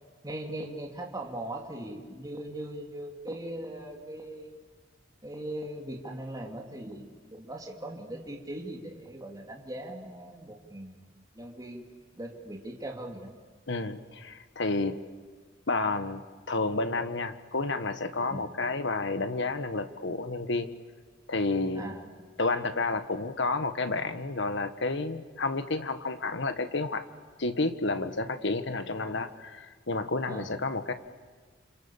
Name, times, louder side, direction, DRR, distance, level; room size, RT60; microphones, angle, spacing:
voice 1, 0.2-4.6 5.2-11.9 12.1-13.3 18.3-18.5 21.7-22.1 30.3-30.5, right 1 dB, 20° right, 0 dB, 2.8 m, -40 dB
voice 2, 13.7-14.9 15.7-16.2 16.5-20.7 21.3-21.9 22.4-27.1 27.4-30.9, left 3 dB, 65° left, 9 dB, 1.6 m, -30 dB
29.0 x 27.0 x 7.3 m, 1.5 s
head